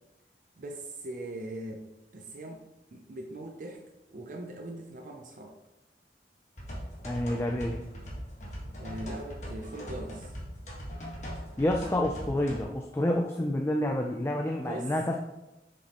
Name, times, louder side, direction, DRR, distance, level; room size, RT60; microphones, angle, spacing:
voice 1, 0.6-1.8 2.1-2.6 2.9-3.8 4.1-5.6 8.8-10.3 14.6-14.9, right 1 dB, 45° right, 2 dB, 0.5 m, -40 dB
sound 1, 6.6-12.6, equal, 40° left, 1.5 m, -40 dB
voice 2, 7.0-7.8 11.6-15.2, left 1 dB, 15° left, 2 dB, 0.3 m, -28 dB
7.1 x 5.2 x 2.9 m, 0.97 s
head